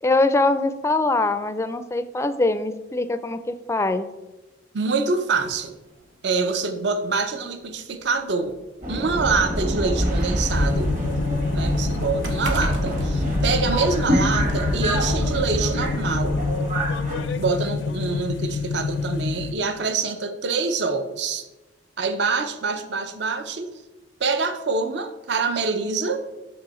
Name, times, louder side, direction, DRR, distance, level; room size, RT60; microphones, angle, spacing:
voice 1, 0.0-4.1, left 2 dB, 15° left, 11 dB, 0.4 m, -22 dB
voice 2, 4.7-5.7 6.2-8.6 8.9-10.9 11.5-16.3 17.4-21.5 22.0-23.7 24.2-26.2, right 4 dB, 65° right, 9 dB, 0.6 m, -25 dB
sound 1, 5.4-5.6 6.6-6.7 7.2-7.3 8.3-10.2 10.6-14.1 14.5-14.6, right 1 dB, 90° right, 1.1 m, -33 dB
Subway metro underground, 8.8-17.2, equal, 45° right, 1.5 m, -25 dB
sound 2, 10.5-19.5, left 4 dB, 80° left, 0.5 m, -28 dB
6.2 x 6.2 x 4.2 m, 1.1 s
head